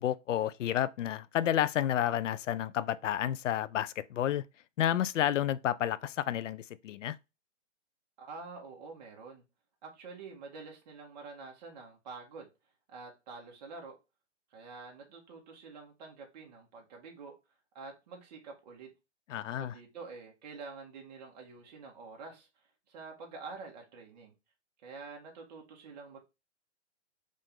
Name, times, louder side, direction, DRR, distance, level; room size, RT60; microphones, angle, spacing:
voice 1, 0.0-4.4 4.8-7.2 19.3-19.7, left 11 dB, 85° left, 0.5 m, -30 dB
voice 2, 8.2-9.4 9.8-12.5 12.9-14.0 14.5-17.3 17.7-18.9 19.4-22.5 22.9-24.3 24.8-26.2, right 4 dB, 35° right, 1.4 m, -47 dB
5.2 x 2.6 x 3.6 m
hypercardioid pair, 165°, 36 cm